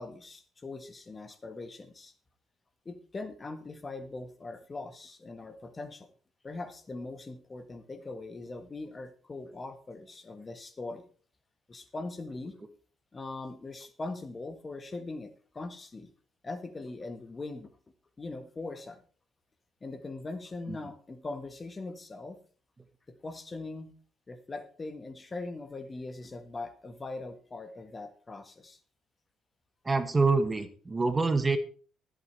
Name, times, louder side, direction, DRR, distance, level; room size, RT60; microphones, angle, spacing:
voice 1, 0.0-2.1 2.8-6.1 6.4-11.0 11.7-12.6 13.1-16.1 16.4-17.7 18.2-19.0 19.8-22.4 23.1-23.9 24.3-28.8, left 3 dB, 25° left, 9 dB, 1.6 m, -41 dB
voice 2, 29.8-31.6, right 3 dB, 20° right, 9 dB, 1.3 m, -26 dB
19.5 x 8.1 x 3.3 m, 0.41 s
cardioid pair, 105°, 0 cm